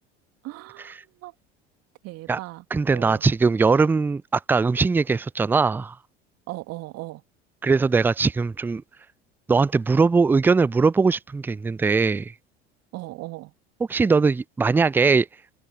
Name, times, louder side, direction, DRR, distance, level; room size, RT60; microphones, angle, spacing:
voice 1, 0.4-1.3 2.0-2.6 2.9-3.2 6.5-7.2 12.9-13.5, right 20 dB, 50° right, 2.9 m, -37 dB
voice 2, 2.7-6.0 7.6-8.8 9.5-12.3 13.9-15.3, right 4 dB, 5° right, 0.4 m, -20 dB
figure-of-eight pair, 65°, 32 cm